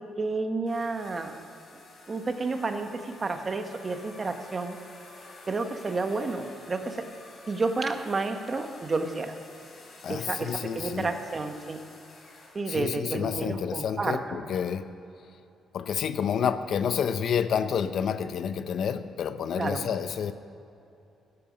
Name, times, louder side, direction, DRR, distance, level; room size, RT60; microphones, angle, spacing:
voice 1, 0.0-1.3 2.1-4.8 5.5-7.1 7.5-9.3 10.1-11.8 12.5-14.4 19.5-19.8, right 3 dB, 35° right, 7 dB, 1.1 m, -31 dB
sound 1, 0.7-12.6, left 2 dB, 45° left, 3.3 m, -50 dB
voice 2, 10.0-11.1 12.7-14.9 15.7-20.3, left 7 dB, 65° left, 12 dB, 0.6 m, -29 dB
14.0 x 10.5 x 5.2 m, 2.7 s
cardioid pair, 90°, 0 cm